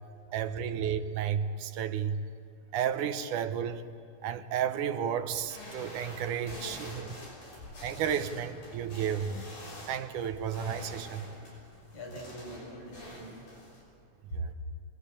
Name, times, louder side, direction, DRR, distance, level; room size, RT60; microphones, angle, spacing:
voice 1, 0.3-2.2 2.7-3.8 4.2-7.1 7.8-9.4 9.9-11.3 14.3-14.5, right 8 dB, 85° right, 2.5 m, -32 dB
sound 1, 5.3-13.8, left 1 dB, 85° left, 7.8 m, -46 dB
voice 2, 11.9-13.5 14.3-14.6, right 1 dB, 40° left, 5.9 m, -41 dB
26.0 x 21.5 x 8.5 m
omnidirectional pair, 3.5 m